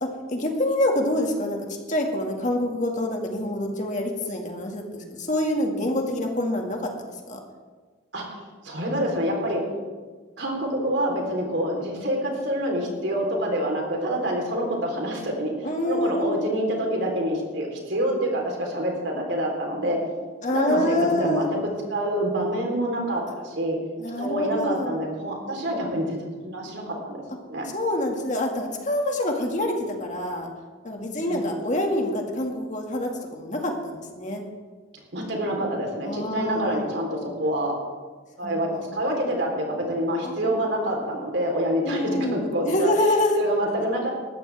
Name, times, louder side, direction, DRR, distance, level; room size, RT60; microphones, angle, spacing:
voice 1, 0.0-6.9 7.3-7.4 15.6-16.4 20.4-21.5 24.0-25.0 27.7-30.5 30.8-34.4 36.1-36.8 38.4-39.0 40.2-40.5 41.9-43.4, left 1 dB, 40° left, 1 dB, 2.1 m, -26 dB
voice 2, 8.1-9.6 10.4-15.5 15.8-20.0 20.5-21.4 21.9-23.8 24.2-27.2 27.5-27.6 31.2-31.5 35.1-37.7 38.4-42.0 42.3-42.9 43.4-44.1, right 1 dB, 70° right, 0 dB, 3.9 m, -27 dB
20.0 x 14.0 x 3.5 m, 1.4 s
head